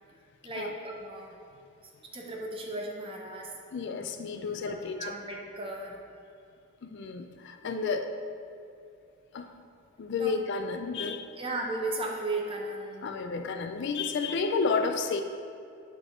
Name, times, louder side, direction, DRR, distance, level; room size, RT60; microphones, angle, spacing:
voice 1, 0.4-1.4 2.1-3.5 4.4-6.0 7.6-8.0 10.2-10.3 11.4-13.2, right 2 dB, 25° right, 0 dB, 0.7 m, -36 dB
voice 2, 3.7-5.1 6.8-8.0 9.3-9.5 10.0-11.3 13.0-15.2, left 4 dB, 55° left, 6 dB, 0.4 m, -31 dB
9.5 x 3.5 x 4.2 m, 2.5 s
head